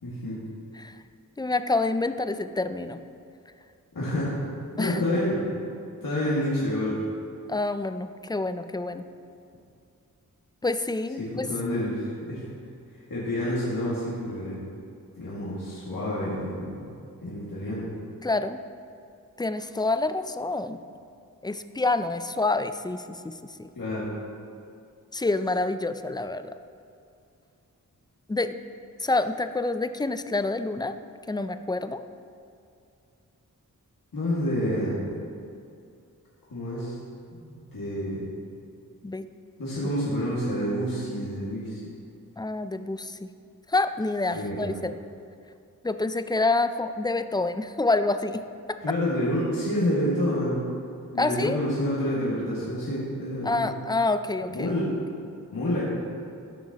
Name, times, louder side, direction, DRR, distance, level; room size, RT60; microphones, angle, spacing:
voice 1, 0.0-0.4 3.9-4.3 4.7-5.4 6.0-7.0 11.2-12.4 13.1-14.6 15.2-16.8 17.2-17.9 23.8-24.1 34.1-35.0 36.5-37.0 37.3-38.3 39.6-41.8 44.3-44.7 48.8-50.6 51.1-53.7 54.5-54.9 55.5-55.8, left 1 dB, 70° left, -8 dB, 2.0 m, -28 dB
voice 2, 1.4-3.0 4.8-5.0 7.5-9.0 10.6-11.5 18.2-18.6 19.4-20.8 21.4-23.3 23.6-23.7 25.1-26.5 28.3-28.6 29.0-31.0 31.3-32.0 39.0-39.3 42.4-43.3 43.7-44.9 45.8-48.4 51.2-51.6 53.4-54.7, left 2 dB, 10° left, 10 dB, 0.4 m, -27 dB
14.5 x 6.0 x 2.9 m, 2.5 s
cardioid pair, 45°, 35 cm